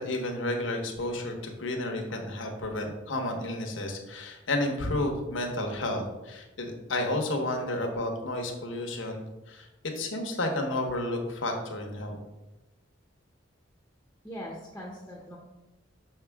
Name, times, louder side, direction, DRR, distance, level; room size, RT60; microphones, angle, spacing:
voice 1, 0.0-9.7 9.9-12.2, left 1 dB, 85° left, 3 dB, 1.2 m, -31 dB
voice 2, 14.2-15.4, equal, 10° left, -2 dB, 0.9 m, -41 dB
6.3 x 5.7 x 3.5 m, 1.0 s
head